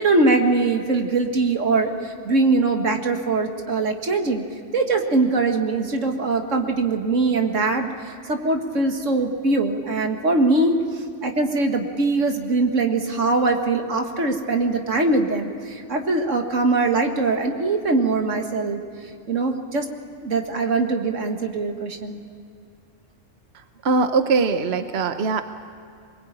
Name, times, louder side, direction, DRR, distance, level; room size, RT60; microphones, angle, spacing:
voice 1, 0.0-4.4 4.7-18.8 19.3-19.9 20.2-22.2, right 3 dB, 85° right, 4 dB, 2.2 m, -22 dB
voice 2, 23.8-25.4, right 4 dB, 60° right, 8 dB, 1.2 m, -21 dB
24.0 x 20.5 x 8.9 m, 2.5 s
omnidirectional pair, 1.3 m